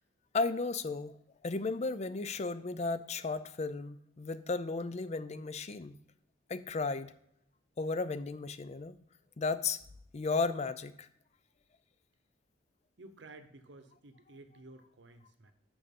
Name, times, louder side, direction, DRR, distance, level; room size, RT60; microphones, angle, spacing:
voice 1, 0.3-1.1 1.4-5.9 6.5-7.1 7.8-9.0 9.4-9.8 10.1-11.1, left 3 dB, 35° left, 13 dB, 0.4 m, -34 dB
voice 2, 13.0-15.5, right 2 dB, 70° right, 9 dB, 0.9 m, -53 dB
6.5 x 6.2 x 5.3 m, 0.72 s
head